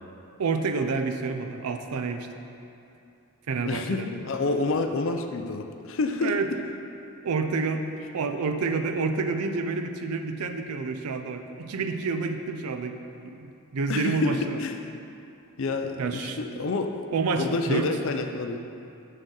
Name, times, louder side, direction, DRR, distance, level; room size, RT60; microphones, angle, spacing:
voice 1, 0.4-2.3 3.5-4.1 6.2-6.5 7.2-7.9 8.1-13.0 13.2-14.6 16.0-16.7 17.1-18.0, right 4 dB, 90° right, 7 dB, 0.5 m, -28 dB
voice 2, 3.6-6.4 13.9-14.8 15.6-16.9 17.4-18.6, left 3 dB, 60° left, 5 dB, 0.5 m, -28 dB
6.6 x 6.5 x 3.8 m, 2.7 s
head